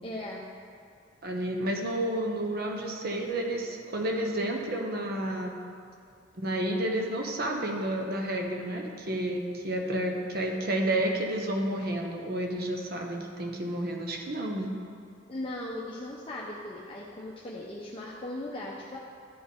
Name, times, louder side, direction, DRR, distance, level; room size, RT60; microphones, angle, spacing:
voice 1, 0.0-0.4 15.3-19.0, left 1 dB, 30° left, -5 dB, 0.6 m, -38 dB
voice 2, 1.2-5.5 6.3-14.7, right 1 dB, 50° right, 1 dB, 0.8 m, -30 dB
12.0 x 4.1 x 3.7 m, 2.4 s
head